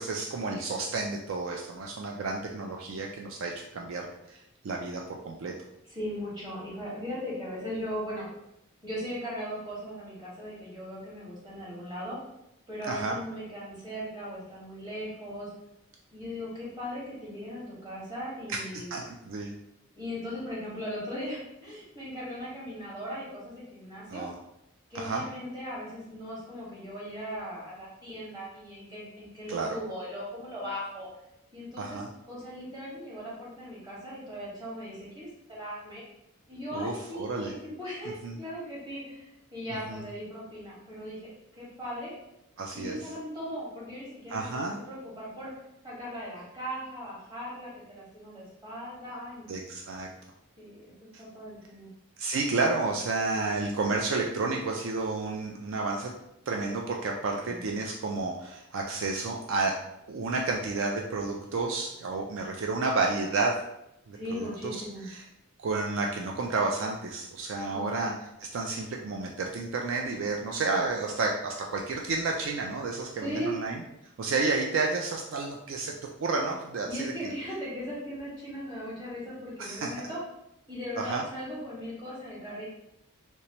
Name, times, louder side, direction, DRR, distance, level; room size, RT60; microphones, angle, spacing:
voice 1, 0.0-5.5 12.9-13.1 18.5-18.6 18.9-19.5 24.1-24.3 24.9-25.2 29.5-29.8 31.8-32.1 36.7-37.5 38.2-38.4 39.9-40.0 42.6-43.0 44.3-44.8 49.5-50.1 51.1-51.2 52.2-56.1 56.5-59.7 60.1-63.5 64.1-64.8 65.1-65.2 65.6-68.1 68.5-73.8 74.2-75.9 76.2-77.3 79.6-79.9 81.0-81.2, right 3 dB, 60° right, 1 dB, 0.3 m, -31 dB
voice 2, 5.9-8.3 8.8-12.2 12.7-15.5 16.1-19.0 19.9-24.2 24.9-31.1 31.5-32.0 32.3-36.0 36.5-41.3 41.6-42.1 42.7-45.5 45.8-49.5 50.6-50.9 51.2-51.9 57.4-57.7 64.1-65.1 67.7-68.1 73.1-73.6 76.9-80.2 80.7-82.6, equal, 20° right, -7 dB, 1.4 m, -38 dB
3.3 x 3.0 x 2.9 m, 0.84 s
head